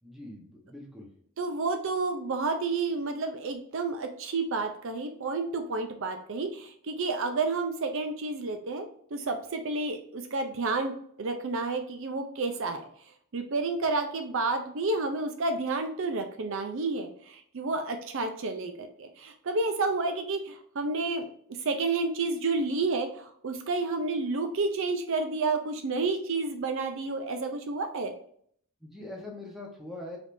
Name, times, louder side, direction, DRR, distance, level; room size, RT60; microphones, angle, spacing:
voice 1, 0.0-1.1 28.8-30.2, left 2 dB, ahead, -2 dB, 1.0 m, -42 dB
voice 2, 1.4-8.9 9.1-12.9 13.3-21.3 21.6-28.1, right 3 dB, 60° right, 6 dB, 0.5 m, -30 dB
5.0 x 3.4 x 2.6 m, 0.62 s
head